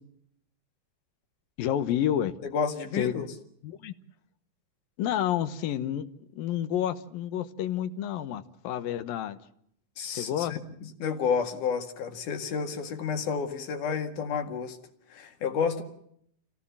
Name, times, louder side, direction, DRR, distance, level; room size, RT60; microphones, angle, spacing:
voice 1, 1.6-2.3 2.9-3.1 3.6-3.9 5.0-6.1 6.4-9.4 10.1-10.6, left 11 dB, 85° left, 12 dB, 2.9 m, -29 dB
voice 2, 2.5-3.3 10.0-10.6 11.0-14.8 15.1-15.8, left 6 dB, 65° left, 6 dB, 3.4 m, -30 dB
28.0 x 17.0 x 7.4 m, 0.71 s
omnidirectional pair, 4.0 m